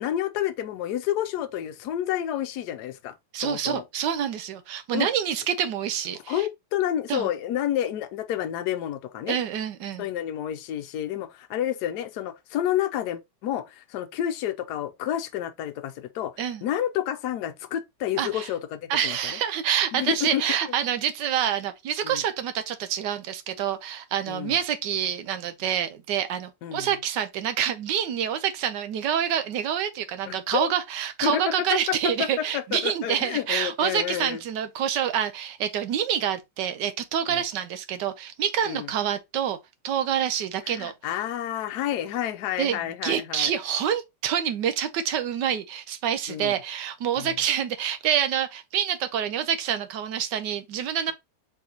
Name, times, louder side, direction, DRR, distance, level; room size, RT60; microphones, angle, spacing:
voice 1, 0.0-3.1 3.4-3.8 4.9-5.1 6.3-9.4 10.0-16.3 16.6-19.2 19.9-20.4 22.0-22.2 24.3-24.6 26.6-26.9 30.3-30.7 31.2-34.4 37.3-37.4 38.6-38.9 40.7-43.5 46.3-46.5 47.2-47.3, left 11 dB, 75° left, 1.2 m, -29 dB
voice 2, 3.3-6.5 7.1-7.3 9.3-10.1 16.4-16.6 18.2-18.5 18.9-39.6 39.8-40.9 42.6-51.1, right 9 dB, 85° right, 1.3 m, -27 dB
4.8 x 3.9 x 2.8 m
omnidirectional pair, 1.8 m